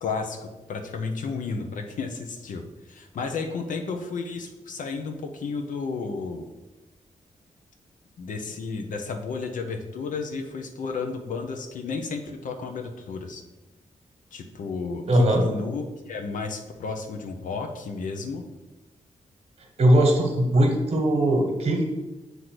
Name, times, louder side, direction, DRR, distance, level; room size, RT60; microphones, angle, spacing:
voice 1, 0.0-6.4 8.2-13.4 14.3-18.5, left 4 dB, 80° left, 4 dB, 0.6 m, -32 dB
voice 2, 15.1-15.5 19.8-21.8, right 1 dB, 50° right, 1 dB, 1.3 m, -20 dB
7.7 x 2.7 x 5.9 m, 1.1 s
wide cardioid pair, 175°, 13 cm